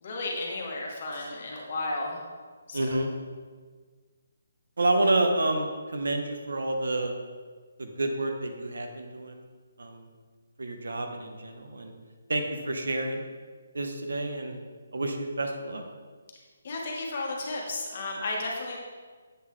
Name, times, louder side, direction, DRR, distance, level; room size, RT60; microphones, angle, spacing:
voice 1, 0.0-2.2 2.7-3.0 16.6-18.8, left 2 dB, 45° left, -1 dB, 1.1 m, -33 dB
voice 2, 2.7-3.1 4.8-7.2 7.8-9.4 9.8-10.0 10.6-11.9 12.3-13.2 13.7-14.6 14.9-15.9, right 2 dB, 80° right, 4 dB, 0.8 m, -29 dB
7.8 x 3.8 x 3.1 m, 1.5 s
hypercardioid pair, 165°, 0 cm